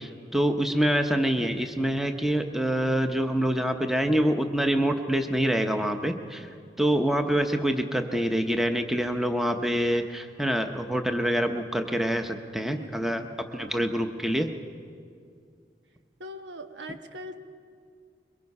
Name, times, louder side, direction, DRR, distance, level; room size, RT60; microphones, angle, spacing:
voice 1, 0.0-6.5 6.8-13.2 13.5-14.5, equal, ahead, 6 dB, 0.8 m, -26 dB
voice 2, 12.6-13.9 16.2-17.4, equal, 90° right, 7 dB, 1.2 m, -43 dB
24.5 x 23.0 x 5.5 m, 2.2 s
head